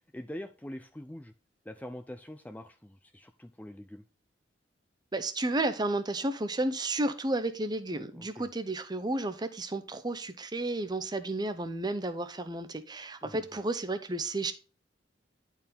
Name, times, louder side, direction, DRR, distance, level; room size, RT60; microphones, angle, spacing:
voice 1, 0.1-1.3 1.7-4.0 8.1-8.5 13.2-13.3, left 1 dB, 10° left, 0.4 m, -44 dB
voice 2, 5.1-14.5, right 2 dB, 20° right, 0.7 m, -32 dB
10.5 x 4.6 x 3.5 m
head